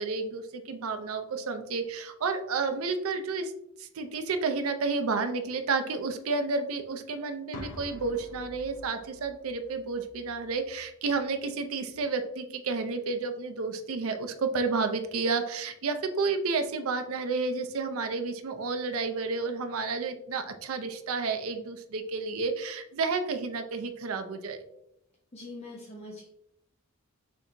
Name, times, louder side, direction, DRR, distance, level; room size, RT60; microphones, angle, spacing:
voice 1, 0.0-3.5 3.8-24.6, right 4 dB, 75° right, 7 dB, 0.5 m, -31 dB
sound 1, 7.5-11.5, left 1 dB, 80° left, 0.7 m, -47 dB
voice 2, 25.3-26.3, left 2 dB, 30° left, -2 dB, 0.6 m, -43 dB
6.4 x 2.9 x 2.6 m, 0.79 s
head